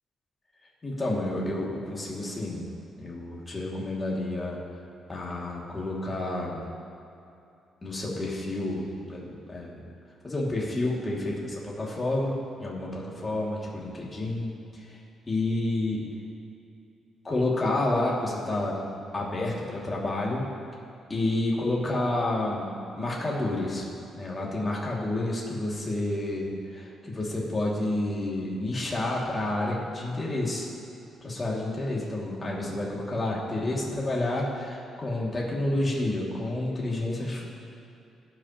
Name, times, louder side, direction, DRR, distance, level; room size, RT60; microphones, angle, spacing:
voice 1, 0.8-2.7 3.0-4.6 5.1-6.6 7.8-9.8 10.2-15.0 15.3-16.1 17.2-18.8 19.1-20.4 21.1-22.7 22.9-23.8 24.2-30.7 31.2-37.4, left 2 dB, 25° left, -4 dB, 2.2 m, -29 dB
17.5 x 6.0 x 2.9 m, 2.7 s
cardioid pair, 90°, 0 cm